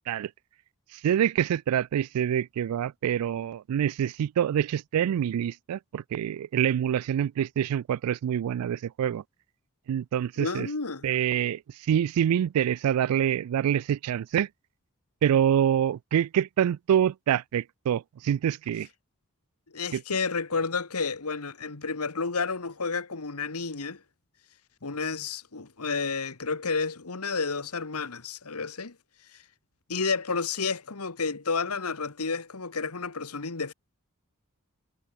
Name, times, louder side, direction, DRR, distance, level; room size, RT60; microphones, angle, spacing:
voice 1, 1.0-9.2 9.9-10.7 11.0-11.6 11.9-14.5 15.2-18.9 19.9-20.0, right 9 dB, 75° right, 0.3 m, -26 dB
voice 2, 10.4-11.1 19.7-24.0 24.8-28.9 29.3-29.4 29.9-33.7, left 4 dB, 85° left, 1.6 m, -31 dB
head